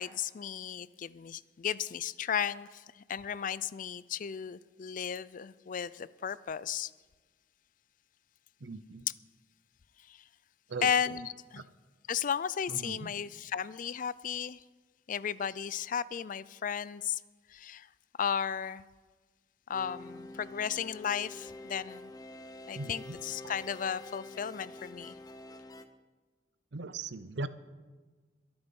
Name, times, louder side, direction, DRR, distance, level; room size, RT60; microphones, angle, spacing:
voice 1, 0.0-6.9 10.0-10.2 10.8-11.6 12.1-14.6 15.1-17.2 17.5-17.9 18.2-18.8 19.7-22.1 22.7-25.2, left 8 dB, 50° left, 0.4 m, -34 dB
voice 2, 8.6-9.0 10.7-11.1 12.7-13.1 22.7-23.2 23.4-23.5 26.7-27.5, right 3 dB, 80° right, 0.7 m, -39 dB
sound 1, 19.7-25.9, left 2 dB, 20° left, 0.7 m, -47 dB
22.5 x 8.0 x 5.4 m
head